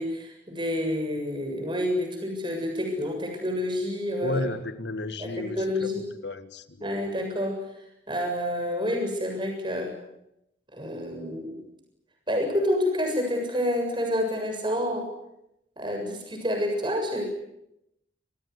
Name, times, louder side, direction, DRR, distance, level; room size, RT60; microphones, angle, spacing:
voice 1, 0.0-4.4 5.2-6.0 6.8-7.6 8.1-9.9 10.7-11.6 12.3-15.1 15.8-17.2, left 1 dB, 25° right, 3 dB, 7.4 m, -28 dB
voice 2, 4.2-5.9 6.2-6.9, left 2 dB, 70° left, 11 dB, 1.7 m, -33 dB
26.5 x 19.5 x 9.6 m, 0.82 s
head